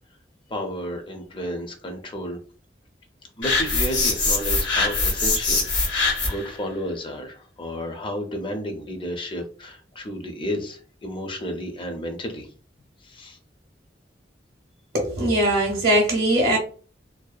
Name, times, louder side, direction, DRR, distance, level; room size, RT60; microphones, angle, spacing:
voice 1, 0.5-2.4 3.4-12.5 13.0-13.4, equal, 30° left, 0.5 m, -32 dB
sound 1, 3.4-6.5, left 3 dB, 85° left, 1.3 m, -23 dB
voice 2, 14.9-16.6, right 1 dB, 55° right, 0.6 m, -20 dB
2.6 x 2.1 x 2.3 m
head